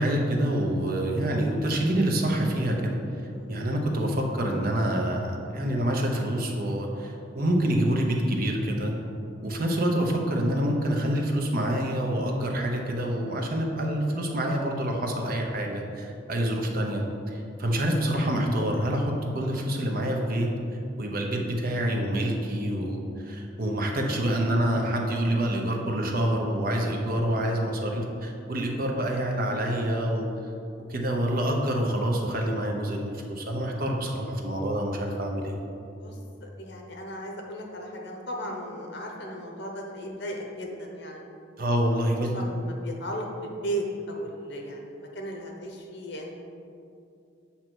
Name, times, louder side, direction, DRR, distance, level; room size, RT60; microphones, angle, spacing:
voice 1, 0.0-2.9 3.5-8.9 9.4-20.5 21.0-30.3 30.9-35.5 41.6-42.4, right 1 dB, 50° right, 1 dB, 0.8 m, -27 dB
voice 2, 36.0-41.2 41.6-46.3, equal, 60° left, 1 dB, 0.9 m, -36 dB
7.7 x 2.9 x 6.1 m, 2.6 s
head